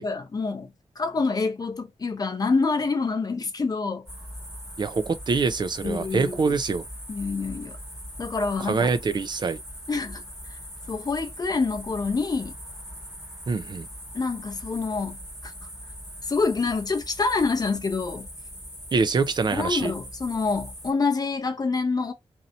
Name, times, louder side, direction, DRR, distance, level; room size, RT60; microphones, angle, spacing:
voice 1, 0.0-4.1 5.8-6.6 7.1-7.8 8.2-8.9 9.9-10.2 10.9-12.5 14.1-15.5 16.3-18.3 19.5-22.1, left 4 dB, 35° left, 0.6 m, -27 dB
sound 1, 4.1-20.9, equal, 5° right, 1.2 m, -41 dB
voice 2, 4.8-6.8 8.6-9.6 13.5-13.9 18.9-19.9, right 4 dB, 40° right, 0.4 m, -25 dB
2.8 x 2.7 x 4.2 m
wide cardioid pair, 180°, 11 cm